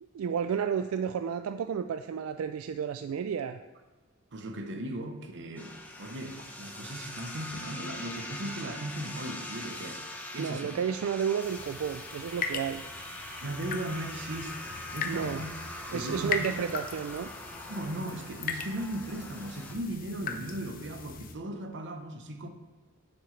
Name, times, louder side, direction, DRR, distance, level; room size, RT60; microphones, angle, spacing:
voice 1, 0.1-3.6 10.4-12.8 15.0-15.4 15.9-17.3, right 7 dB, 85° right, 0.3 m, -32 dB
voice 2, 4.3-10.1 10.3-10.8 13.4-15.5 15.9-16.6 17.7-22.5, right 1 dB, 60° right, 0.9 m, -37 dB
sound 1, 5.6-19.7, left 1 dB, 10° left, 1.0 m, -42 dB
sound 2, 11.4-21.3, left 5 dB, 45° left, 0.7 m, -39 dB
9.5 x 7.5 x 3.2 m
head